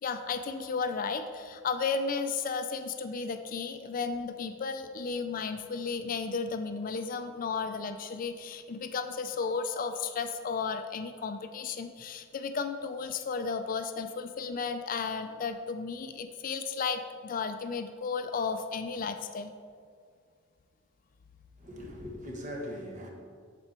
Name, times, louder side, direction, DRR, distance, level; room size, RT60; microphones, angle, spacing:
voice 1, 0.0-19.5, left 5 dB, 40° left, 0.4 m, -34 dB
voice 2, 21.6-23.1, equal, 40° right, 1.3 m, -40 dB
7.8 x 6.9 x 4.4 m
head